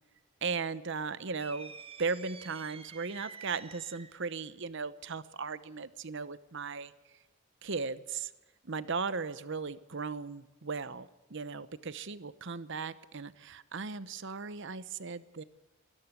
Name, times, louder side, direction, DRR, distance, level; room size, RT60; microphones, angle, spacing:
voice 1, 0.4-1.7 2.0-6.9 7.6-8.3 8.6-15.4, right 4 dB, 60° right, 15 dB, 0.9 m, -37 dB
sound 1, 1.4-4.3, right 4 dB, 30° right, 1.2 m, -49 dB
23.0 x 13.0 x 9.4 m, 1.0 s
head